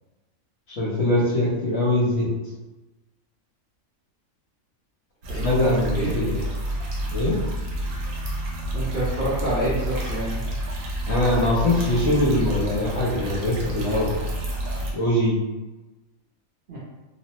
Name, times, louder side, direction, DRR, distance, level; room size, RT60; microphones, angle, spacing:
voice 1, 0.7-2.3 5.4-6.4 7.1-7.4 11.1-14.1 14.9-15.4, left 1 dB, 55° left, -6 dB, 1.0 m, -22 dB
sound 1, 5.2-14.9, right 1 dB, 70° right, 1.0 m, -29 dB
voice 2, 8.7-10.4 16.7-16.8, right 1 dB, 50° right, -9 dB, 0.7 m, -27 dB
3.0 x 2.0 x 2.8 m, 1.1 s
omnidirectional pair, 1.4 m